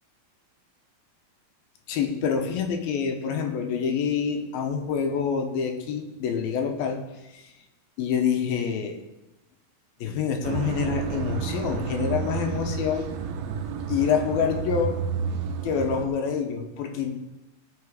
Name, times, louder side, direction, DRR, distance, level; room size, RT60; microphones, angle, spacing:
voice 1, 1.9-7.0 7.3-7.5 8.0-9.0 10.0-13.1 13.9-15.0 15.6-17.2, left 7 dB, 80° left, 4 dB, 2.9 m, -27 dB
sound 1, 10.4-16.1, right 6 dB, 85° right, 2.7 m, -30 dB
17.0 x 5.9 x 5.1 m, 1.0 s
omnidirectional pair, 4.3 m